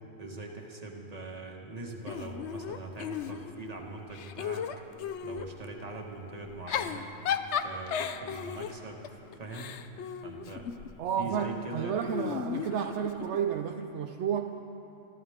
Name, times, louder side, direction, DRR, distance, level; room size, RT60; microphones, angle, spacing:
voice 1, 0.2-4.7 5.2-7.1 7.5-9.8 10.2-10.6 11.2-12.0, right 2 dB, 30° right, 1 dB, 1.6 m, -42 dB
Giggle / Chuckle chortle, 2.1-3.7 4.1-5.5 6.5-10.9 12.0-13.4, left 8 dB, 70° left, 0.9 m, -35 dB
voice 2, 11.0-14.6, right 8 dB, 70° right, 6 dB, 0.9 m, -31 dB
27.0 x 14.0 x 3.6 m, 2.9 s
omnidirectional pair, 1.3 m